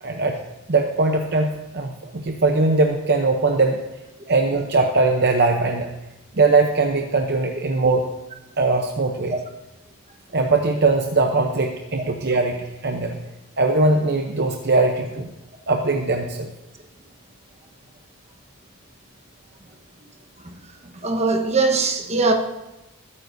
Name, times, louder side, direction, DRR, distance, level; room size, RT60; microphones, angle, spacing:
voice 1, 0.0-0.4 0.7-3.8 4.3-5.9 6.3-8.1 8.6-9.3 10.3-12.6 12.8-13.2 13.6-15.3 15.7-16.5, right 3 dB, 45° right, 0.8 m, -20 dB
voice 2, 21.0-22.3, right 3 dB, 30° right, 1.2 m, -20 dB
20.5 x 9.8 x 2.7 m
head